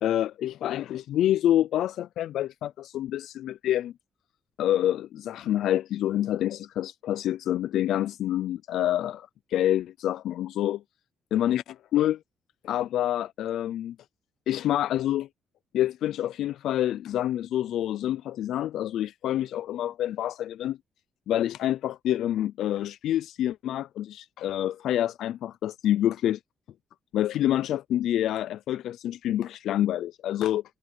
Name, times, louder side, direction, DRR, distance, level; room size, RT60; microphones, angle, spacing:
voice 1, 0.0-3.9 4.6-10.8 11.3-11.6 11.9-12.2 12.6-14.0 14.5-15.3 15.7-20.8 21.3-26.4 27.1-30.6, left 12 dB, 80° left, 0.4 m, -27 dB
cardioid pair, 90°, 0 cm